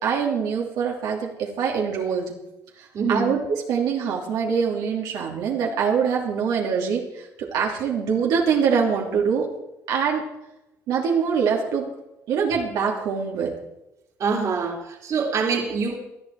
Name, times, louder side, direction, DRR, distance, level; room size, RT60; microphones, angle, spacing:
voice 1, 0.0-2.3 2.8-9.5 9.9-10.2 10.9-11.9 12.3-13.5, right 6 dB, 85° right, -1 dB, 2.8 m, -24 dB
voice 2, 2.9-3.4 14.2-16.0, right 5 dB, 55° right, 1 dB, 3.0 m, -25 dB
19.0 x 12.0 x 4.7 m, 0.92 s
cardioid pair, 110°, 6 cm